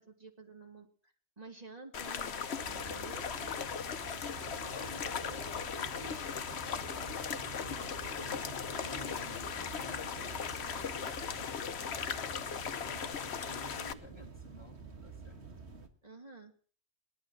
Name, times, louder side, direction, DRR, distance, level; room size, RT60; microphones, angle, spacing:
voice 1, 0.0-3.5 16.0-16.5, right 3 dB, 35° right, 1 dB, 2.5 m, -51 dB
sound 1, 1.9-13.9, left 7 dB, 75° left, 1.2 m, -38 dB
sound 2, 2.5-15.9, right 5 dB, 80° right, 1.9 m, -49 dB
voice 2, 4.7-6.3 6.7-15.4, left 1 dB, 25° left, 6 dB, 2.4 m, -52 dB
18.5 x 11.5 x 6.2 m, 0.43 s
omnidirectional pair, 1.1 m